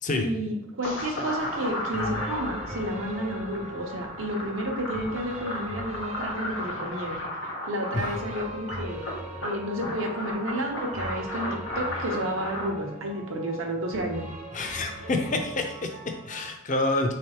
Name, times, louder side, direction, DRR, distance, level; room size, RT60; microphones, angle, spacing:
voice 1, 0.1-7.2 7.7-9.0 9.4-14.2, equal, 85° right, 1 dB, 0.7 m, -31 dB
sound 1, 0.8-12.7, left 1 dB, 75° left, 1.0 m, -35 dB
sound 2, 1.0-16.5, right 1 dB, 35° right, 0.5 m, -41 dB
voice 2, 14.5-17.1, left 2 dB, 40° left, 5 dB, 0.5 m, -28 dB
3.9 x 3.3 x 2.9 m, 0.80 s
head